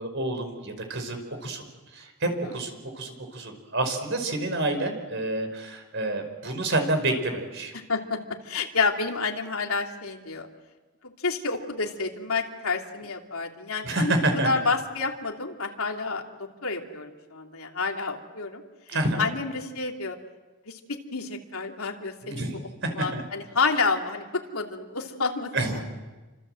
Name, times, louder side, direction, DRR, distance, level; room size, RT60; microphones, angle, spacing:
voice 1, 0.0-1.6 1.9-7.7 13.8-14.5 18.9-19.3 22.2-23.2 25.5-25.8, right 2 dB, 55° right, 6 dB, 5.1 m, -28 dB
voice 2, 7.7-10.5 11.0-14.1 14.4-16.2 16.6-18.6 18.9-20.2 20.7-22.5 22.9-25.8, left 4 dB, 80° left, 2 dB, 2.9 m, -29 dB
29.5 x 25.5 x 7.8 m, 1.2 s
head